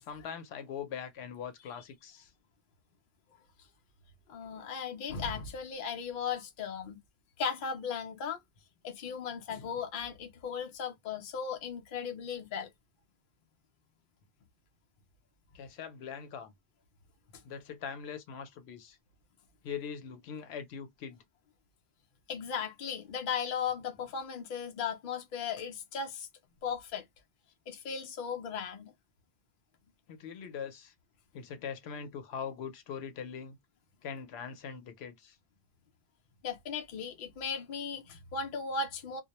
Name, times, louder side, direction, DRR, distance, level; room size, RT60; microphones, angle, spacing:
voice 1, 0.0-2.3 15.5-16.5 17.4-19.0 19.6-21.2 30.1-30.9 31.3-33.6 34.0-35.4, left 7 dB, 90° left, 0.9 m, -42 dB
voice 2, 4.3-7.0 7.4-8.4 8.8-12.7 22.3-26.3 26.6-27.0 27.7-28.9 36.4-39.2, left 6 dB, 60° left, 0.7 m, -36 dB
2.2 x 2.0 x 2.9 m
omnidirectional pair, 1.0 m